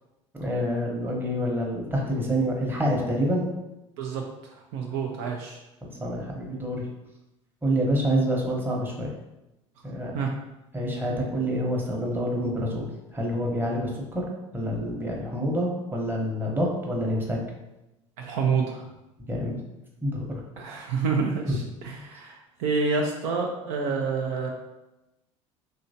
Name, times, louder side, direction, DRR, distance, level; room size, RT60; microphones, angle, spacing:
voice 1, 0.4-3.4 5.8-6.9 7.6-9.1 9.8-10.2 10.7-14.3 14.5-17.4 19.3-19.6 20.0-20.4 21.5-21.6, equal, 15° right, -2 dB, 1.0 m, -27 dB
voice 2, 4.0-5.6 10.1-10.3 18.2-19.0 20.6-24.5, right 5 dB, 60° right, 1 dB, 0.5 m, -28 dB
3.1 x 2.8 x 2.7 m, 0.96 s
figure-of-eight pair, 65°, 16 cm